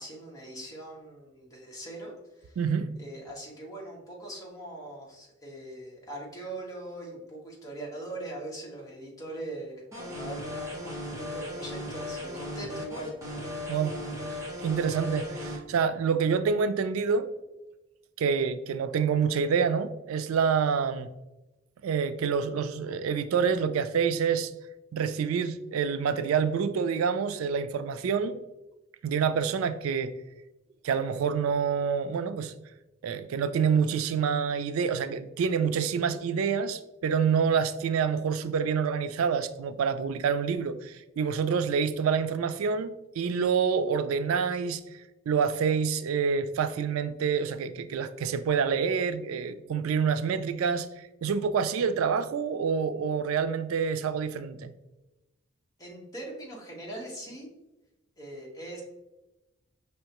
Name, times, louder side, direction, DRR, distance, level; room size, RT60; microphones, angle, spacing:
voice 1, 0.0-2.6 3.0-13.1 55.8-57.5 58.2-58.8, right 1 dB, 15° left, 1.1 m, -41 dB
voice 2, 2.6-2.9 13.7-14.0 14.6-17.3 18.2-21.1 21.8-24.5 24.9-28.4 29.0-30.1 30.8-32.5 33.0-54.7, right 6 dB, 85° right, 0.3 m, -27 dB
sound 1, 9.9-15.6, left 1 dB, 15° right, 0.9 m, -37 dB
5.4 x 3.3 x 2.9 m
head